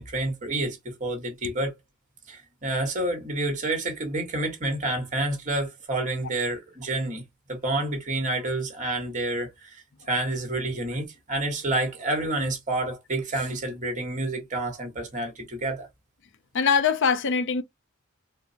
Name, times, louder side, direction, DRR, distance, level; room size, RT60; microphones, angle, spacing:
voice 1, 0.0-1.7 2.3-7.2 7.5-15.9, right 2 dB, 35° right, 1.3 m, -29 dB
voice 2, 16.5-17.6, left 6 dB, 60° left, 0.5 m, -22 dB
4.3 x 2.0 x 2.7 m
head